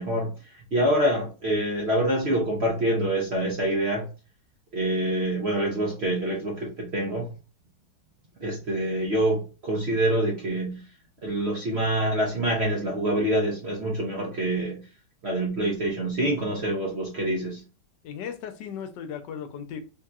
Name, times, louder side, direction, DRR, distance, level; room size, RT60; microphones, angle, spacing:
voice 1, 0.0-4.1 4.7-7.3 8.4-10.8 11.2-14.8 15.2-17.6, right 1 dB, 55° right, 0.7 m, -26 dB
voice 2, 18.0-19.8, left 8 dB, 80° left, 1.2 m, -36 dB
3.6 x 2.7 x 2.3 m
omnidirectional pair, 1.9 m